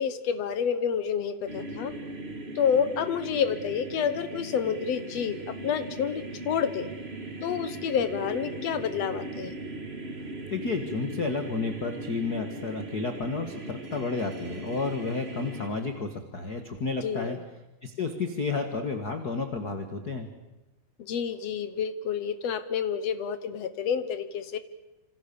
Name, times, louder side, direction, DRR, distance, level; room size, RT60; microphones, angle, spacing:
voice 1, 0.0-1.9 2.5-6.9 7.4-9.6 17.0-17.4 21.0-24.6, left 7 dB, 65° left, 13 dB, 1.7 m, -29 dB
sound 1, 1.4-15.7, right 2 dB, 25° right, 1.6 m, -39 dB
voice 2, 10.5-17.4 17.8-20.3, left 4 dB, 40° left, 7 dB, 1.5 m, -31 dB
27.0 x 27.0 x 7.0 m, 1.0 s
omnidirectional pair, 4.3 m